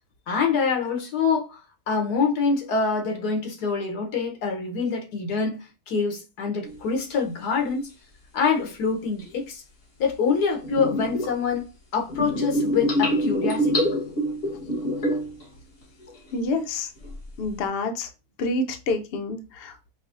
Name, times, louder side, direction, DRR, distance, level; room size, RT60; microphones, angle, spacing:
voice 1, 0.3-1.6 1.9-7.9 8.3-9.6 10.0-11.6 11.9-13.9, left 5 dB, 70° left, 1.4 m, -25 dB
sound 1, 6.6-6.8 9.2-9.3 10.6-11.4 12.1-15.4 15.8-16.3 17.0-17.4, equal, 45° left, 1.0 m, -26 dB
voice 2, 16.3-16.9 17.4-18.1 18.4-19.9, left 2 dB, 85° left, 0.5 m, -28 dB
5.1 x 2.1 x 2.5 m
omnidirectional pair, 1.8 m